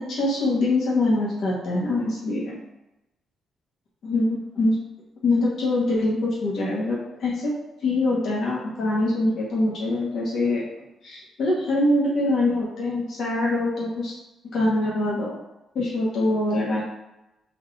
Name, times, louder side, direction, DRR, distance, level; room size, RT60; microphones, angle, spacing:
voice 1, 0.0-2.6 4.0-4.8 5.2-7.5 7.8-10.6 11.0-14.1 14.5-15.3 15.7-16.8, left 2 dB, 50° left, -6 dB, 1.1 m, -24 dB
3.9 x 2.5 x 4.7 m, 0.95 s
cardioid pair, 170°, 0 cm